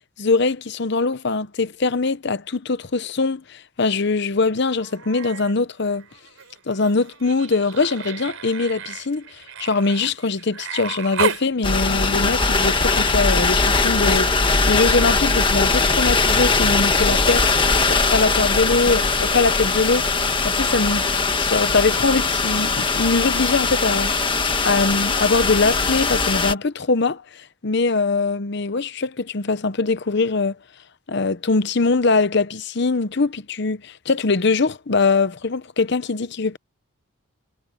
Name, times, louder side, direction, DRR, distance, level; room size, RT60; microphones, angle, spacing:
voice 1, 0.2-6.0 6.7-17.5 17.8-20.1 20.4-24.1 24.6-30.6 31.1-36.6, left 3 dB, 55° left, 0.8 m, -22 dB
Human voice, 4.8-5.6 5.9-11.5 13.1-13.2, right 5 dB, 85° right, 4.3 m, -32 dB
sound 1, 11.6-26.5, left 4 dB, 25° left, 1.6 m, -20 dB
head